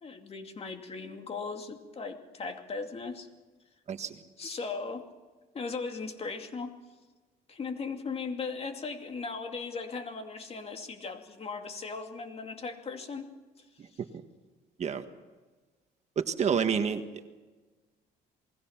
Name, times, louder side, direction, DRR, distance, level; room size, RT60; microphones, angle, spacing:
voice 1, 0.0-3.3 4.4-5.1 5.5-6.7 7.5-13.3, left 4 dB, 35° left, 5 dB, 2.6 m, -38 dB
voice 2, 3.9-4.2 13.8-13.9 14.8-15.0 16.1-17.0, right 7 dB, 40° right, 8 dB, 1.5 m, -28 dB
28.0 x 20.5 x 5.9 m, 1.3 s
cardioid pair, 110°, 17 cm